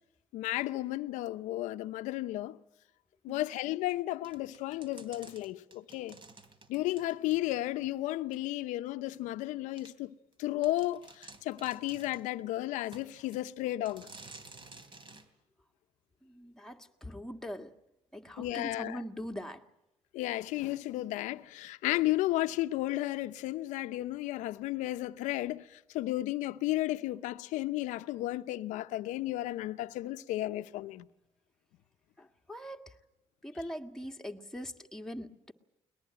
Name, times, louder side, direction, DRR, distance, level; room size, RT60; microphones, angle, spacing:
voice 1, 0.3-2.6 3.2-6.2 6.7-14.1 18.4-19.0 20.1-31.1, left 16 dB, 90° left, 0.8 m, -33 dB
sound 1, 4.2-7.9 8.3-8.4 9.1-9.2 9.8-9.9 10.3-10.4 10.6-12.3 12.9-13.4 13.9-15.3, right 3 dB, 40° right, 3.1 m, -53 dB
voice 2, 16.2-17.7 18.1-19.7 32.2-33.0 33.4-35.5, equal, 5° left, 1.8 m, -42 dB
22.0 x 20.5 x 8.8 m
supercardioid pair, 75°, 12 cm